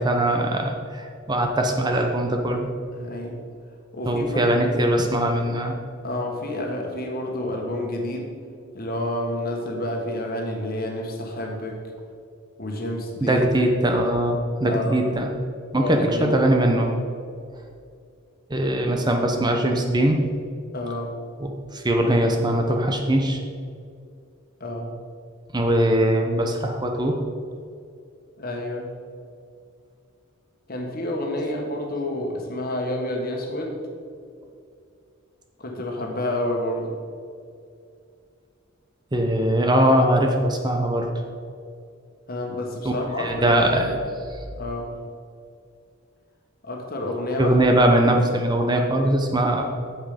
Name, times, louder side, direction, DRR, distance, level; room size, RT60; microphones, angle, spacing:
voice 1, 0.0-2.7 4.1-5.8 13.2-15.3 15.7-16.9 18.5-20.2 21.4-23.4 25.5-27.2 39.1-41.1 42.8-43.9 44.3-44.4 47.4-49.6, right 1 dB, 20° right, 3 dB, 0.8 m, -21 dB
voice 2, 2.9-3.4 3.9-4.8 6.0-8.3 8.7-11.8 12.6-13.4 14.6-15.0 15.7-16.5 20.7-21.1 24.6-25.0 28.4-28.9 30.7-33.8 35.6-37.0 42.3-43.9 44.6-44.9 46.6-47.5 48.0-48.2, left 1 dB, 45° left, 1 dB, 1.6 m, -29 dB
8.9 x 7.5 x 5.1 m, 2.3 s
head